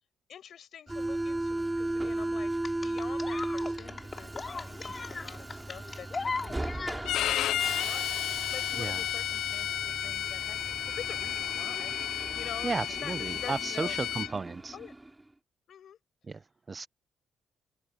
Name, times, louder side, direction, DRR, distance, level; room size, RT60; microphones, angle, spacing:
voice 1, 0.3-11.9 12.3-14.0 14.7-14.9 15.7-16.0, left 9 dB, 60° left, 6.9 m, -47 dB
Subway metro underground, 0.9-15.2, right 2 dB, 15° right, 3.6 m, -36 dB
sound 1, 2.6-7.4 8.6-8.7, left 4 dB, 30° left, 3.6 m, -37 dB
voice 2, 4.9-5.3 8.8-9.0 12.6-14.8 16.3-16.9, right 4 dB, 30° right, 0.7 m, -35 dB
Bowed string instrument, 7.0-14.3, left 12 dB, 80° left, 0.7 m, -32 dB
open air
cardioid pair, 90°, 0 cm